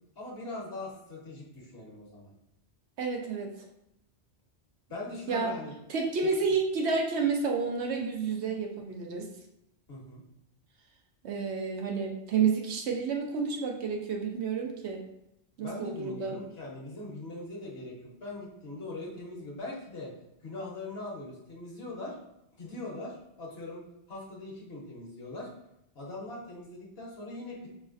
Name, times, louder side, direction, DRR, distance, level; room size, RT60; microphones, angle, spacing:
voice 1, 0.2-2.3 4.9-5.7 9.9-10.2 15.6-20.1 20.4-22.2 22.6-23.8 24.1-25.5 25.9-27.7, left 2 dB, 60° left, -3 dB, 1.2 m, -41 dB
voice 2, 3.0-3.5 5.3-5.5 5.9-9.3 11.2-15.0 15.6-16.4, right 5 dB, 70° right, 3 dB, 0.9 m, -30 dB
4.9 x 3.2 x 2.5 m, 0.83 s
omnidirectional pair, 1.2 m